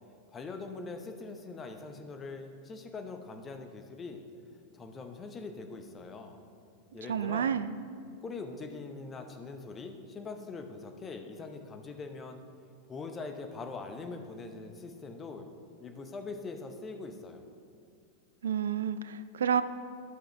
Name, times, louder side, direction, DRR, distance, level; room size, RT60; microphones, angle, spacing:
voice 1, 0.3-4.2 4.7-6.4 6.9-7.6 8.2-12.4 12.9-15.5 15.8-17.4, left 3 dB, 20° left, 5 dB, 0.8 m, -42 dB
voice 2, 7.1-7.7 18.4-19.6, right 8 dB, 65° right, 13 dB, 0.3 m, -29 dB
12.5 x 6.3 x 3.3 m, 2.4 s
figure-of-eight pair, 90°, 0 cm